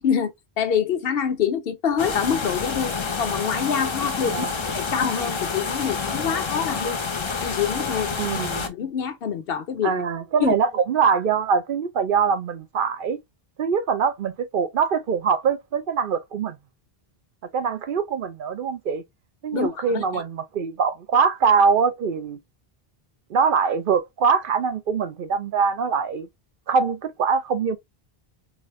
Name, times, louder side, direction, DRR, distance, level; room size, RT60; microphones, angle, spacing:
voice 1, 0.0-7.0 7.4-8.1 8.7-9.9 10.4-10.6 19.5-20.2, left 7 dB, 70° left, 0.9 m, -26 dB
sound 1, 2.0-8.7, left 5 dB, 35° left, 0.6 m, -28 dB
voice 2, 4.2-4.6 8.1-8.7 9.8-13.2 13.6-16.6 17.5-19.0 19.4-22.4 23.3-26.3 26.7-27.8, right 6 dB, 65° right, 0.8 m, -23 dB
4.1 x 2.5 x 3.0 m
omnidirectional pair, 1.0 m